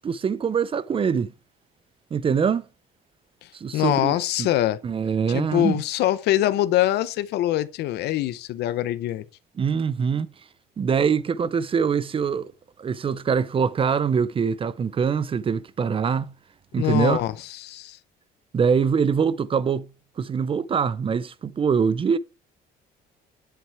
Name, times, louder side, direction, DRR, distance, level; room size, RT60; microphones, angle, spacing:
voice 1, 0.0-1.3 2.1-2.6 3.5-4.5 4.8-5.8 9.6-10.3 10.8-12.5 12.8-16.3 16.7-17.2 18.5-19.9 20.2-22.2, right 6 dB, 30° right, 0.6 m, -23 dB
voice 2, 3.7-4.8 5.3-9.2 16.7-18.0, left 14 dB, 80° left, 0.8 m, -24 dB
9.2 x 7.7 x 4.7 m
cardioid pair, 110°, 17 cm